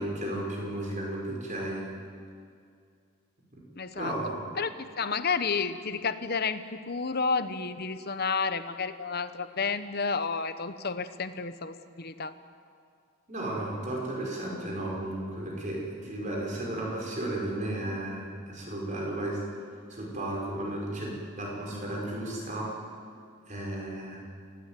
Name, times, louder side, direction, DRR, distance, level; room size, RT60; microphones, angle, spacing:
voice 1, 0.0-1.9 3.5-3.6 3.9-4.5 13.3-19.4 19.9-22.7 23.5-24.2, right 1 dB, 35° right, -2 dB, 6.1 m, -34 dB
voice 2, 3.7-4.2 4.6-12.3, left 5 dB, 45° left, 11 dB, 1.1 m, -31 dB
27.0 x 17.0 x 9.3 m, 2.3 s
head